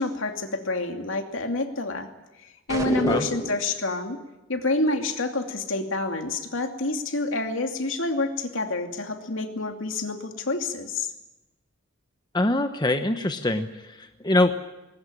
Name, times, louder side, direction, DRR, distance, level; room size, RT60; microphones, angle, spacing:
voice 1, 0.0-2.1 2.4-4.2 4.5-11.1, left 2 dB, 70° left, 5 dB, 2.6 m, -28 dB
sound 1, 2.7-3.7, right 1 dB, 15° right, 2.0 m, -29 dB
voice 2, 12.3-14.7, left 2 dB, 20° left, 7 dB, 1.0 m, -24 dB
21.0 x 19.0 x 9.9 m, 1.0 s
head